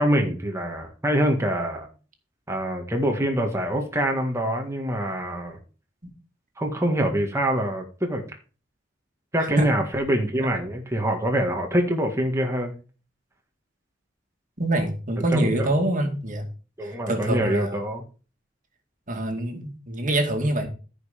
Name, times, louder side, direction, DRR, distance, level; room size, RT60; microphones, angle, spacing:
voice 1, 0.0-1.9 2.5-5.6 6.6-8.2 9.3-12.7 15.3-15.7 16.8-18.0, right 1 dB, 15° right, 2 dB, 1.7 m, -25 dB
voice 2, 14.6-16.4 16.8-17.8 19.1-20.7, right 1 dB, 45° right, 5 dB, 2.2 m, -25 dB
14.5 x 5.5 x 5.1 m, 0.36 s
head